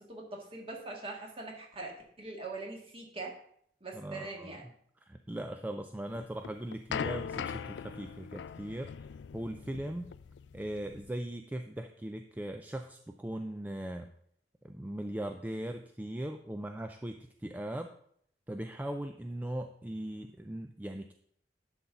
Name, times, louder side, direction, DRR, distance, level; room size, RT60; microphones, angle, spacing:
voice 1, 0.0-3.4 3.8-4.6, right 3 dB, 35° right, 0 dB, 1.8 m, -42 dB
voice 2, 3.9-4.6 5.1-9.1 9.3-10.1 10.5-14.1 14.6-17.9 18.5-21.1, right 1 dB, 10° right, 6 dB, 0.3 m, -39 dB
sound 1, 6.1-11.1, left 7 dB, 90° left, 0.3 m, -40 dB
11.0 x 3.9 x 5.7 m, 0.67 s
head